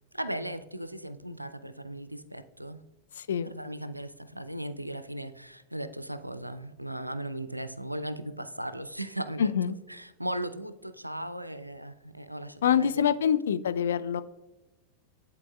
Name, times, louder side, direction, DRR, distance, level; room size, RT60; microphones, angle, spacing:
voice 1, 0.1-2.8 3.4-9.5 9.9-12.9, right 1 dB, 90° right, 12 dB, 0.3 m, -37 dB
voice 2, 3.2-3.5 9.4-9.8 12.6-14.2, left 8 dB, 65° left, 11 dB, 0.3 m, -25 dB
11.0 x 4.0 x 2.3 m, 1.0 s
figure-of-eight pair, 90°, 0 cm